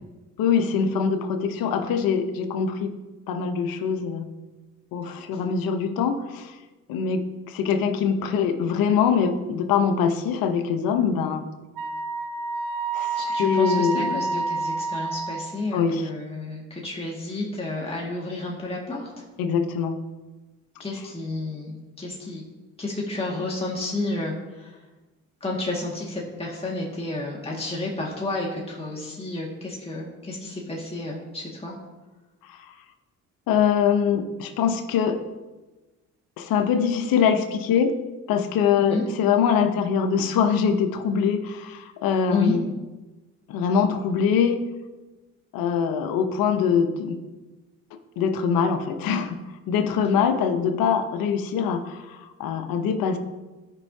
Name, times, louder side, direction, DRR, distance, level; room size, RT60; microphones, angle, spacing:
voice 1, 0.4-2.9 3.3-4.3 4.9-6.5 6.9-11.4 12.9-14.2 15.7-16.1 19.4-20.0 33.5-35.2 36.4-37.9 38.3-42.7 43.5-44.6 45.5-47.2 48.2-49.4 49.7-53.2, left 7 dB, 80° left, 8 dB, 0.9 m, -23 dB
Wind instrument woodwind instrument, 11.8-15.6, right 3 dB, 70° right, 0.9 m, -28 dB
voice 2, 13.2-19.1 20.8-22.5 22.8-24.8 25.4-31.8 38.8-39.0 42.3-42.6, left 2 dB, 15° left, -3 dB, 1.8 m, -31 dB
13.0 x 5.5 x 2.7 m, 1.2 s
supercardioid pair, 65°, 35 cm